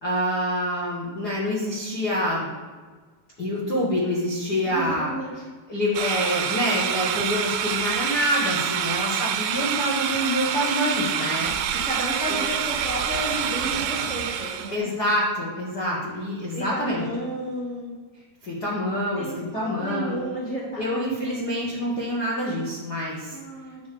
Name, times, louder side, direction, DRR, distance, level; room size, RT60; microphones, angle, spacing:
voice 1, 0.0-2.5 3.4-5.1 5.7-11.5 14.7-17.0 18.4-20.2 20.8-23.3, equal, 80° left, -6 dB, 0.9 m, -26 dB
voice 2, 4.6-5.3 8.5-8.9 11.3-11.5 11.8-14.9 16.5-17.9 19.1-21.5 23.3-23.8, equal, 30° right, -9 dB, 1.5 m, -32 dB
sound 1, 6.0-14.8, right 9 dB, 85° right, 2.5 m, -27 dB
9.2 x 3.5 x 6.8 m, 1.4 s
omnidirectional pair, 4.3 m